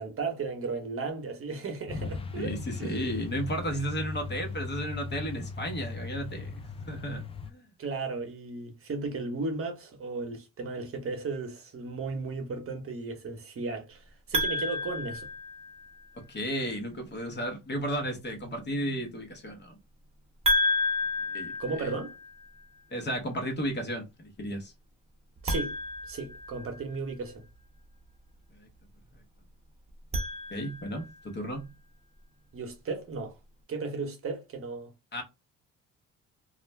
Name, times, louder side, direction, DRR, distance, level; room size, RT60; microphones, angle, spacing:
voice 1, 0.0-2.5 2.8-3.2 7.8-15.3 21.6-22.1 25.4-25.7 26.1-27.4 32.5-33.4 33.7-34.9, right 3 dB, 45° right, 0.9 m, -35 dB
Truck, 1.9-7.5, left 4 dB, 20° left, 0.4 m, -38 dB
voice 2, 2.4-6.5 6.9-7.2 7.5-7.6 16.2-19.8 21.3-21.9 22.9-24.7 28.6-28.7 30.5-31.7 35.1-35.2, equal, 35° left, 0.9 m, -34 dB
sound 1, 14.3-16.0 20.4-22.5 25.4-27.0 29.9-31.1, left 2 dB, 20° right, 0.9 m, -31 dB
2.4 x 2.1 x 3.2 m
cardioid pair, 90°, 30 cm